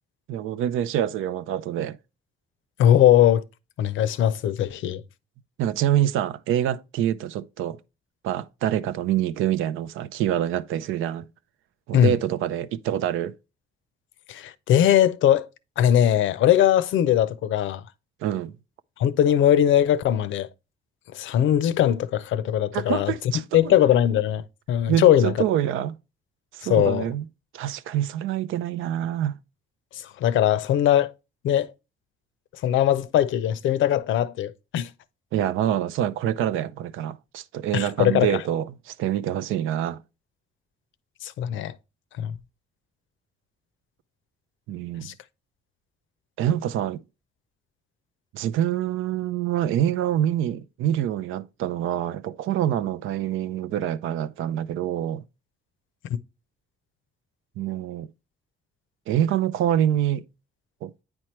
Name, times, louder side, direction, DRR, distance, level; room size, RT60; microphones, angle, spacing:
voice 1, 0.3-2.0 5.6-7.8 8.2-11.3 11.9-13.3 18.2-18.5 22.7-23.8 24.9-26.0 26.5-27.2 27.5-29.4 35.3-40.0 44.7-45.1 46.4-47.0 48.3-55.2 57.6-58.1 59.1-60.2 60.8-60.9, right 11 dB, 85° right, 0.5 m, -26 dB
voice 2, 2.8-3.4 3.8-5.0 11.9-12.2 14.3-15.5 15.8-17.8 19.0-20.5 21.1-23.1 23.5-24.4 24.7-25.3 26.7-27.0 29.9-31.1 31.4-31.7 32.6-34.9 37.7-38.3 41.2-41.7 42.2-42.3 45.0-45.1, left 11 dB, 75° left, 0.5 m, -20 dB
8.7 x 4.5 x 3.1 m
cardioid pair, 90°, 20 cm